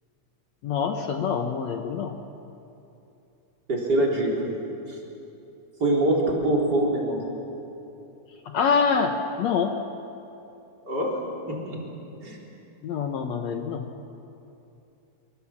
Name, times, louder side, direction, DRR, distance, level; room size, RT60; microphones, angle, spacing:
voice 1, 0.6-2.2 8.5-9.7 12.8-13.9, left 6 dB, 65° left, 5 dB, 2.1 m, -25 dB
voice 2, 3.7-4.5 4.9-5.0 5.8-7.2 10.8-11.1 11.5-11.8 12.2-12.4 13.2-13.3, right 1 dB, 30° right, -3 dB, 4.3 m, -24 dB
25.5 x 23.0 x 7.3 m, 2.8 s
omnidirectional pair, 3.6 m